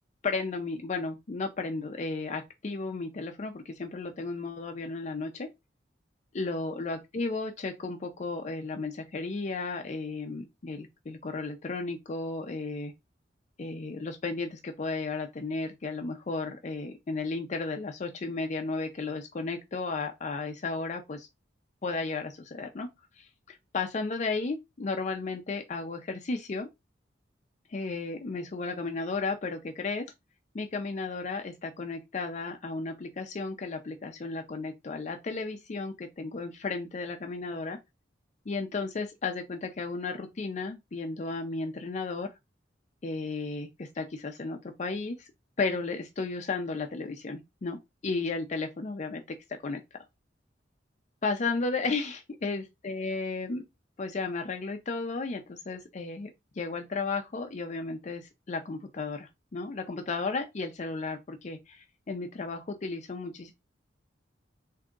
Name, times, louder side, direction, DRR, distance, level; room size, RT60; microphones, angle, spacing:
voice 1, 0.2-5.5 6.3-12.9 13.6-21.3 21.8-22.9 23.2-26.7 27.7-30.0 30.5-37.8 38.5-42.3 43.0-45.3 45.6-49.2 49.6-49.8 51.2-53.6 54.0-63.5, left 3 dB, 40° left, 0.5 m, -34 dB
3.5 x 2.7 x 3.7 m
head